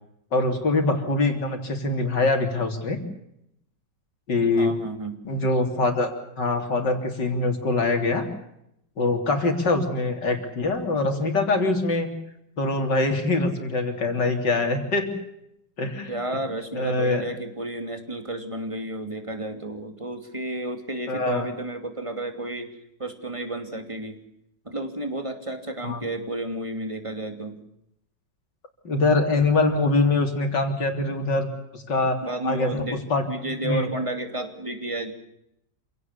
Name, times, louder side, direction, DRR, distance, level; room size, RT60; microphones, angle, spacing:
voice 1, 0.3-3.0 4.3-4.7 5.2-6.1 6.4-8.3 9.0-12.1 12.6-15.1 15.8-16.1 16.7-17.2 21.1-21.5 25.8-26.0 28.8-32.8 33.1-33.3 33.6-33.9, left 2 dB, 80° left, 5 dB, 4.1 m, -23 dB
voice 2, 4.6-5.2 16.1-24.2 24.6-27.6 32.2-33.0 33.3-35.1, right 1 dB, 15° right, 6 dB, 2.9 m, -32 dB
27.5 x 17.5 x 8.3 m, 0.80 s
omnidirectional pair, 1.9 m